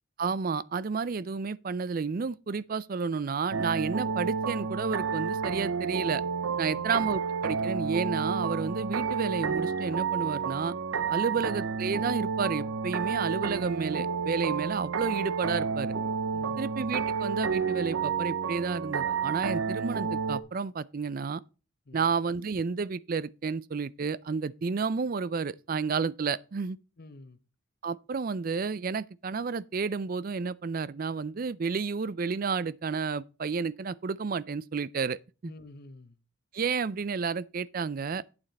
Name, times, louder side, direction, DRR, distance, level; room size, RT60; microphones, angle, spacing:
voice 1, 0.2-6.2 6.6-10.7 11.1-16.0 16.6-21.4 21.9-26.8 27.8-35.2 35.4-35.5 36.5-38.2, right 5 dB, 45° right, 0.4 m, -31 dB
sound 1, 3.5-20.4, right 6 dB, 90° right, 0.7 m, -30 dB
voice 2, 16.3-16.7 21.9-22.1 27.0-27.4 35.4-36.2, left 2 dB, 50° left, 0.9 m, -49 dB
8.9 x 7.6 x 4.1 m
head